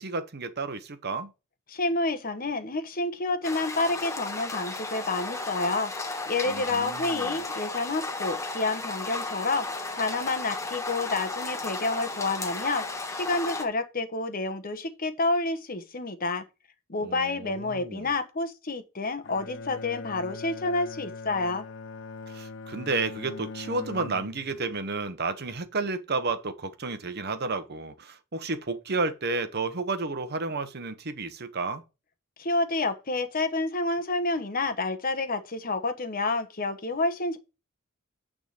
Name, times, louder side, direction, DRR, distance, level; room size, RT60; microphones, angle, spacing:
voice 1, 0.0-1.3 6.4-7.4 17.0-18.1 22.3-31.8, right 3 dB, 50° right, 0.9 m, -32 dB
voice 2, 1.7-5.9 6.3-9.7 9.9-12.9 13.1-16.4 16.9-21.6 32.4-37.4, left 3 dB, 40° left, 1.1 m, -29 dB
sound 1, 3.4-13.7, left 3 dB, 15° left, 1.1 m, -34 dB
Bowed string instrument, 19.2-24.7, left 3 dB, 60° left, 0.6 m, -41 dB
9.1 x 3.7 x 6.7 m
head